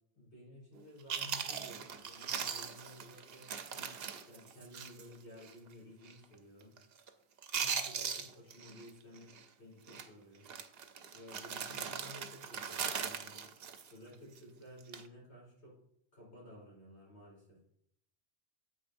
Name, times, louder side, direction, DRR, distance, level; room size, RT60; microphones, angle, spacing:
voice 1, 0.1-4.0 4.2-6.7 7.5-10.5 11.1-13.4 13.9-15.8 16.1-17.6, left 1 dB, 85° left, -4 dB, 4.2 m, -54 dB
Chewing mastication, 0.8-0.9 1.1-5.1 5.4-5.5 6.0-6.3 6.6-7.1 7.4-8.9 9.2-9.4 9.9-10.1 10.4-14.4 14.8-15.1, right 7 dB, 65° right, 0.9 m, -40 dB
9.1 x 8.1 x 2.6 m, 0.73 s
omnidirectional pair, 1.1 m